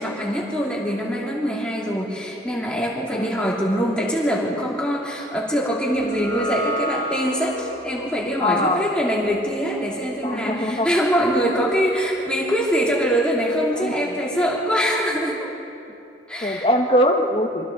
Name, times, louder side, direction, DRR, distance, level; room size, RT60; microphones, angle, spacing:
voice 1, 0.0-15.5 16.3-16.7, equal, 5° left, -5 dB, 3.2 m, -23 dB
sound 1, 5.9-12.3, equal, 45° right, 5.6 m, -33 dB
voice 2, 8.4-8.9 10.2-10.9 13.8-14.2 16.4-17.7, left 1 dB, 30° left, 3 dB, 1.6 m, -22 dB
27.0 x 25.5 x 4.1 m, 2.7 s
head